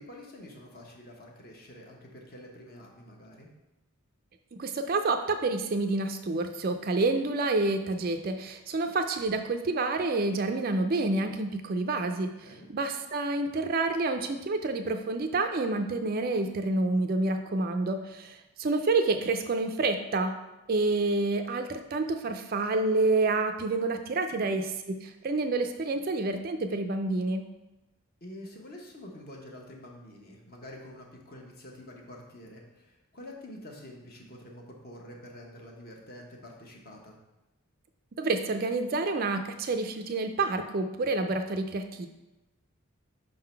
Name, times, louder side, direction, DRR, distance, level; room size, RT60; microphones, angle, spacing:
voice 1, 0.0-3.5 12.4-12.7 24.3-24.6 28.2-37.2, left 1 dB, 40° left, 0 dB, 1.1 m, -47 dB
voice 2, 4.5-12.3 12.7-20.3 20.7-27.4 38.2-42.1, right 3 dB, 40° right, 7 dB, 0.4 m, -28 dB
5.2 x 3.7 x 5.7 m, 1.0 s
head